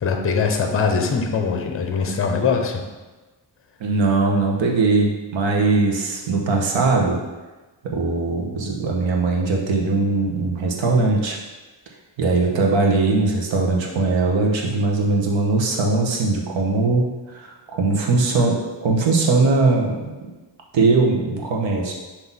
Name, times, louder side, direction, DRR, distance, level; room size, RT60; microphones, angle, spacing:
voice 1, 0.0-2.8, left 5 dB, 30° left, 3 dB, 0.7 m, -22 dB
voice 2, 3.8-7.2 7.8-11.4 12.2-17.1 17.3-20.3 20.7-21.9, right 3 dB, 75° right, 0 dB, 1.1 m, -20 dB
6.0 x 2.9 x 5.5 m, 1.2 s
wide cardioid pair, 165°, 46 cm